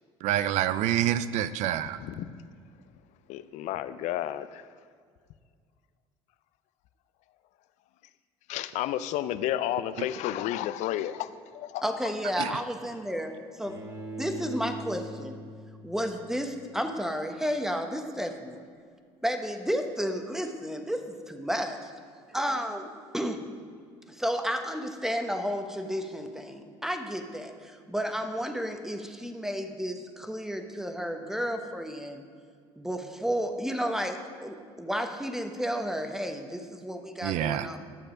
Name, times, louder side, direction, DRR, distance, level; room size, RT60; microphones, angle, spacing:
voice 1, 0.2-2.0 12.4-12.5 37.2-37.7, right 11 dB, 65° right, 14 dB, 0.5 m, -27 dB
voice 2, 2.0-2.3 3.3-4.6 8.5-11.1 11.6-11.8, left 12 dB, 65° left, 14 dB, 0.5 m, -31 dB
voice 3, 11.8-13.8 14.2-15.4 15.8-18.6 19.2-21.0 21.3-21.9 22.3-23.4 24.1-32.2 32.8-37.8, equal, 5° right, 6 dB, 1.0 m, -32 dB
Bowed string instrument, 13.6-16.7, right 1 dB, 30° right, 1.9 m, -41 dB
10.5 x 6.7 x 5.0 m, 2.1 s
hypercardioid pair, 70°, 13 cm